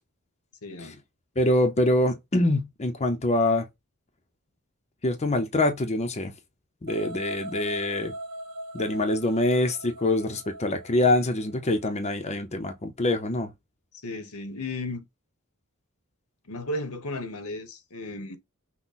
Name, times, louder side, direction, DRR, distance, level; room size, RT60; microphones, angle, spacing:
voice 1, 0.6-1.0 14.0-15.1 16.4-18.4, left 2 dB, 80° left, 1.1 m, -34 dB
voice 2, 1.4-3.7 5.0-6.3 6.8-8.1 8.7-13.5, left 1 dB, 30° left, 0.7 m, -25 dB
sound 1, 6.9-11.9, right 1 dB, 80° right, 1.3 m, -40 dB
5.9 x 2.2 x 4.0 m
head